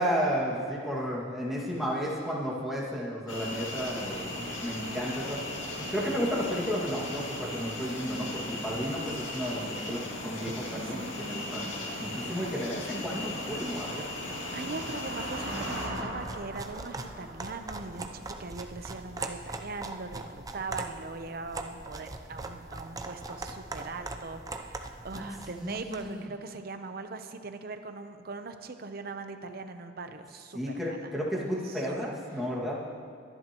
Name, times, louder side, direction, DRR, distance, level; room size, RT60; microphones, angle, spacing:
voice 1, 0.0-5.5 5.8-11.7 12.0-14.1 25.1-26.3 30.5-32.8, equal, ahead, -6 dB, 2.0 m, -33 dB
sound 1, 3.3-15.9, left 1 dB, 85° left, 2.1 m, -37 dB
voice 2, 10.7-11.4 14.5-31.1 31.6-31.9, right 3 dB, 55° right, 8 dB, 0.8 m, -41 dB
sound 2, 11.9-12.0 12.5-19.1, right 1 dB, 75° right, 2.2 m, -42 dB
sound 3, 15.8-26.1, right 3 dB, 20° right, 0.6 m, -41 dB
23.0 x 11.0 x 3.0 m, 2.3 s
head